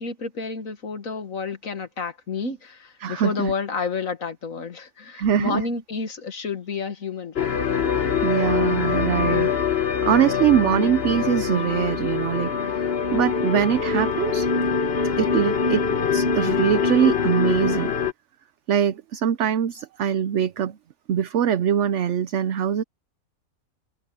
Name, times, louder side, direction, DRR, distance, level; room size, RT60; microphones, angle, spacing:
voice 1, 0.0-7.6, left 5 dB, 60° left, 2.0 m, -30 dB
voice 2, 3.0-3.5 5.1-5.6 8.2-9.5 10.0-14.5 15.2-17.9 18.7-20.8 21.1-22.8, right 9 dB, 60° right, 0.8 m, -23 dB
sound 1, 7.4-18.1, left 6 dB, 45° left, 1.1 m, -24 dB
omnidirectional pair, 1.6 m